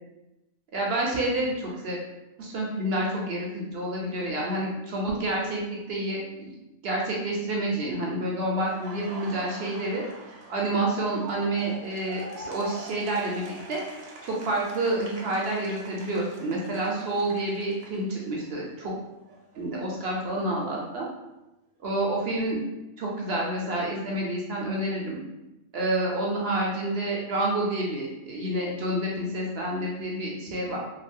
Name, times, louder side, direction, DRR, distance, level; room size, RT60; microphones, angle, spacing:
voice 1, 0.7-2.0 2.4-5.6 5.9-6.5 6.8-13.8 14.2-18.9 19.6-21.1 21.8-22.6 23.0-25.2 25.7-30.8, right 1 dB, 60° right, -3 dB, 0.7 m, -29 dB
Laughter, 8.6-18.5 18.8-20.8, right 1 dB, 80° right, 1.0 m, -44 dB
2.8 x 2.3 x 2.5 m, 0.96 s
omnidirectional pair, 1.4 m